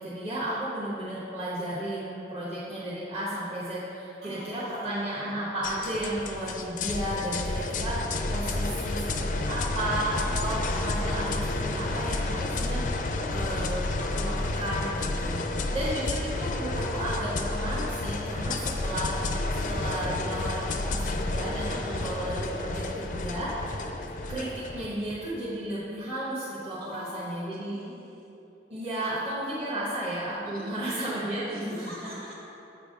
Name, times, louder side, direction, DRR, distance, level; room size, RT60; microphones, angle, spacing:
voice 1, 0.0-12.8 13.3-15.5 15.7-19.1 19.6-23.8 24.3-27.8 28.7-32.1, right 1 dB, 35° right, -9 dB, 1.0 m, -33 dB
voice 2, 4.2-5.3 10.2-10.6 15.1-16.1 21.7-22.1 26.8-28.3 28.8-29.1 30.4-30.9 31.5-32.3, equal, 55° right, -5 dB, 1.4 m, -46 dB
sound 1, 5.6-24.9, left 2 dB, 45° left, 0.4 m, -30 dB
sound 2, 18.3-25.3, right 1 dB, 15° right, 0.4 m, -51 dB
7.6 x 3.5 x 5.1 m, 2.9 s
head